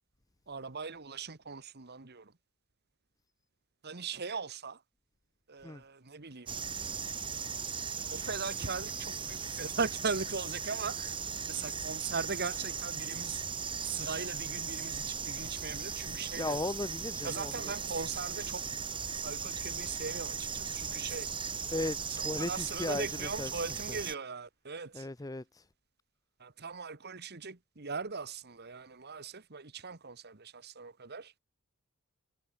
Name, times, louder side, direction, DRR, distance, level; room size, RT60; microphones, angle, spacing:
voice 1, 0.5-2.3 3.8-4.8 5.5-6.5 8.1-11.2 11.5-13.5 13.8-16.6 17.2-18.7 19.2-21.3 22.1-25.1 26.4-31.3, right 5 dB, 45° right, 1.6 m, -39 dB
sound 1, 6.5-24.1, right 6 dB, 25° right, 2.8 m, -38 dB
voice 2, 16.4-17.7 21.7-23.5 23.9-24.0 24.9-25.4, left 2 dB, 15° left, 0.6 m, -36 dB
head